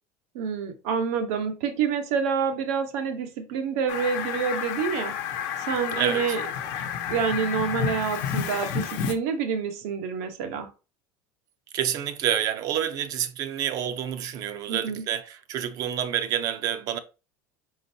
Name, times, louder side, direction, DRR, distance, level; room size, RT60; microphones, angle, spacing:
voice 1, 0.3-6.4 6.7-6.8 7.1-10.7 14.7-15.0, right 6 dB, 85° right, 1.0 m, -28 dB
Fowl, 3.9-9.1, left 8 dB, 70° left, 0.8 m, -30 dB
voice 2, 11.7-17.0, right 10 dB, 50° right, 0.6 m, -28 dB
4.4 x 3.9 x 2.7 m
cardioid pair, 150°, 8 cm